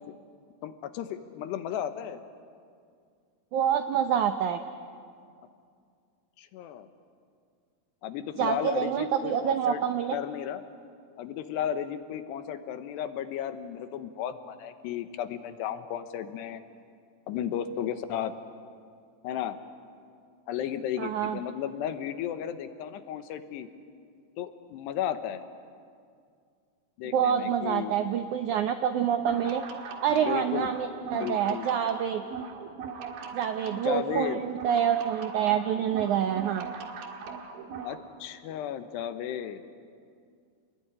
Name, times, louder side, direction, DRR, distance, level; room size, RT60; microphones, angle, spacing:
voice 1, 0.6-2.2 6.4-6.9 8.0-9.8 10.1-10.6 11.2-16.6 17.3-18.3 19.2-19.6 20.5-23.7 24.4-25.4 27.0-28.0 30.1-30.7 31.1-31.7 33.7-34.4 37.8-39.6, left 10 dB, 85° left, 10 dB, 3.3 m, -34 dB
voice 2, 3.5-4.6 8.4-10.2 21.0-21.4 27.1-29.6 30.0-32.2 33.3-36.7, right 8 dB, 80° right, 7 dB, 1.7 m, -27 dB
sound 1, 29.1-38.0, right 5 dB, 65° right, 3.4 m, -40 dB
29.0 x 20.5 x 9.9 m, 2.2 s
omnidirectional pair, 4.7 m